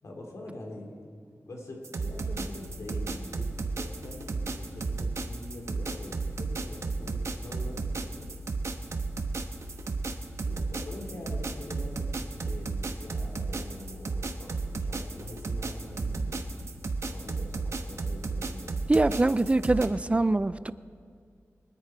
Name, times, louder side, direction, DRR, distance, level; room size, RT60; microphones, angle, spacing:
voice 1, 0.0-0.9 1.5-8.3 10.4-16.7 17.1-18.8, left 1 dB, 80° left, 0 dB, 2.6 m, -44 dB
sound 1, 1.8-19.9, right 3 dB, 65° right, 1.0 m, -33 dB
voice 2, 18.9-20.7, right 2 dB, 25° right, 15 dB, 0.3 m, -24 dB
24.0 x 9.9 x 4.6 m, 2.1 s
wide cardioid pair, 95°, 5 cm